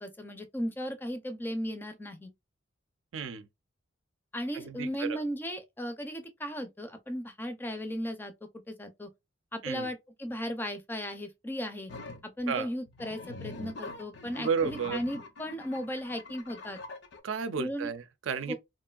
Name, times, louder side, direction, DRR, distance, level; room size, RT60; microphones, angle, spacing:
voice 1, 0.0-2.3 4.3-8.3 8.7-9.1 9.5-11.9 12.2-16.8 17.6-17.9 18.5-18.6, equal, 10° left, 0.4 m, -36 dB
voice 2, 3.1-3.5 4.5-5.2 9.6-9.9 12.5-12.7 14.4-15.0 17.2-18.5, right 6 dB, 80° right, 0.4 m, -32 dB
sound 1, 11.9-12.2 12.9-17.2, left 3 dB, 60° left, 0.5 m, -44 dB
3.1 x 2.5 x 2.2 m
head